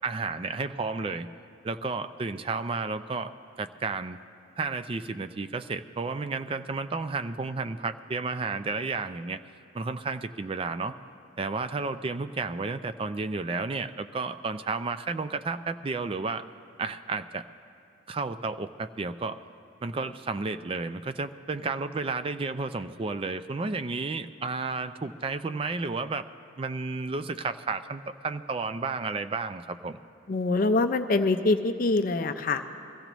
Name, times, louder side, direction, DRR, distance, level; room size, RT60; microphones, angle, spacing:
voice 1, 0.0-1.3 1.6-3.3 3.6-4.2 4.6-9.4 9.7-11.0 11.4-16.4 16.8-17.4 18.1-19.4 19.8-26.3 26.6-30.0, right 4 dB, 25° right, 10 dB, 0.3 m, -32 dB
voice 2, 30.3-32.7, left 3 dB, 45° left, 8 dB, 0.4 m, -24 dB
22.0 x 15.0 x 3.0 m, 2.5 s
head